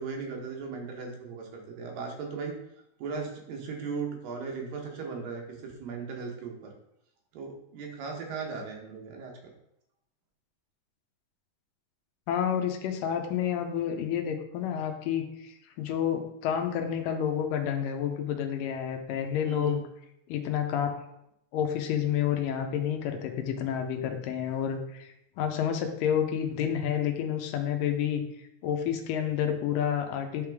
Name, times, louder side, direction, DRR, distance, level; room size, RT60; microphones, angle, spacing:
voice 1, 0.0-2.6 3.0-6.7 7.3-9.3 19.4-19.8, right 5 dB, 85° right, 1 dB, 2.8 m, -37 dB
voice 2, 12.3-19.8 20.3-21.0 21.5-28.2 28.6-30.5, left 9 dB, 85° left, 5 dB, 2.4 m, -29 dB
9.9 x 3.4 x 3.5 m, 0.79 s
omnidirectional pair, 3.9 m